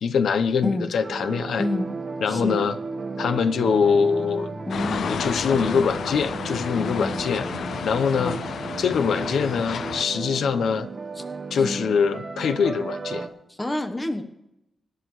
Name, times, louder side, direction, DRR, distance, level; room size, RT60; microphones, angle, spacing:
voice 1, 0.0-1.7 2.2-2.8 3.2-4.5 5.0-7.5 7.8-8.4 8.8-10.9 11.5-13.3, left 6 dB, 90° left, 10 dB, 0.7 m, -23 dB
sound 1, 1.0-13.3, right 3 dB, 30° right, 1.2 m, -34 dB
voice 2, 2.3-2.6 4.7-5.1 6.7-7.2 8.2-8.4 11.2-11.3 11.6-11.9 13.5-14.2, left 1 dB, 15° left, 6 dB, 1.0 m, -29 dB
Bass guitar, 3.4-9.6, equal, 15° right, 2.7 m, -43 dB
sound 2, 4.7-10.0, left 7 dB, 65° left, 0.4 m, -32 dB
24.5 x 10.5 x 3.1 m, 0.89 s
wide cardioid pair, 175°, 0 cm